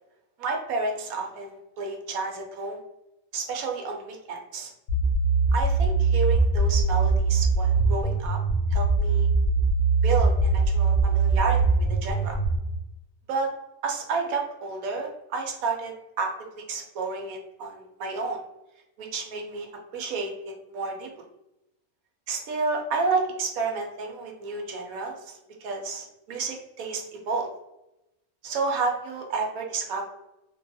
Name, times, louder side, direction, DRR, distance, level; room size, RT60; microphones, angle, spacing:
voice 1, 0.4-2.8 3.3-4.7 5.5-8.4 8.7-9.3 10.0-11.6 11.9-12.4 13.3-13.5 13.8-18.4 19.0-19.7 19.9-21.1 22.3-27.5 28.4-30.1, right 4 dB, 75° right, 2 dB, 1.1 m, -31 dB
sound 1, 4.9-12.6, right 3 dB, 65° left, 1.0 m, -22 dB
3.1 x 2.3 x 2.6 m, 0.90 s
omnidirectional pair, 1.5 m